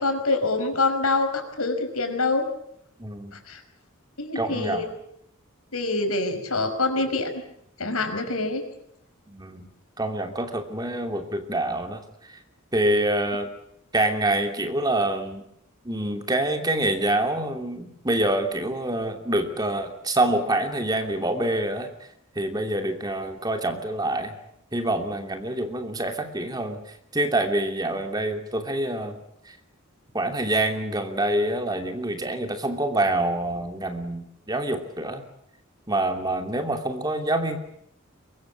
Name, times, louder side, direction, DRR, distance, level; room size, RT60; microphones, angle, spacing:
voice 1, 0.0-2.5 3.3-3.6 4.2-4.9 5.7-7.4 7.8-8.6, left 3 dB, 90° left, 7 dB, 5.6 m, -25 dB
voice 2, 3.0-3.4 4.3-4.8 9.3-9.7 10.0-12.3 12.7-13.5 13.9-15.4 15.8-21.9 22.3-24.3 24.7-29.2 29.5-29.6 30.1-35.2 35.9-37.6, right 1 dB, 20° right, 6 dB, 2.8 m, -26 dB
23.5 x 22.0 x 8.5 m, 0.72 s
head